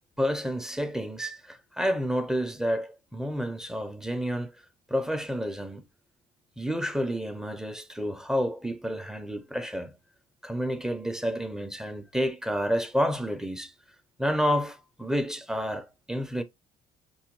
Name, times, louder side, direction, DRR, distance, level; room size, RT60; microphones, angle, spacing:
voice 1, 0.2-4.5 4.9-5.8 6.6-10.0 10.4-13.7 14.2-16.4, equal, 5° right, 0.6 m, -29 dB
6.0 x 2.1 x 2.9 m
cardioid pair, 110°, 17 cm